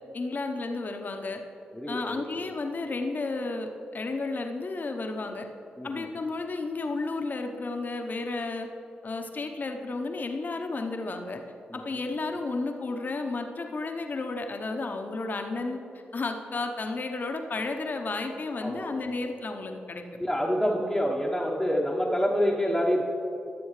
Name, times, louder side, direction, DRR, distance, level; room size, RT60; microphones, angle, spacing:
voice 1, 0.1-1.4 1.9-5.5 5.8-8.7 9.0-11.4 11.7-15.8 16.1-20.0, left 3 dB, 50° left, 4 dB, 0.9 m, -32 dB
voice 2, 1.7-2.2 5.8-6.1 11.7-11.8 18.6-19.0 20.2-23.0, equal, ahead, -6 dB, 1.2 m, -27 dB
14.0 x 7.0 x 3.3 m, 2.8 s
supercardioid pair, 40°, 4 cm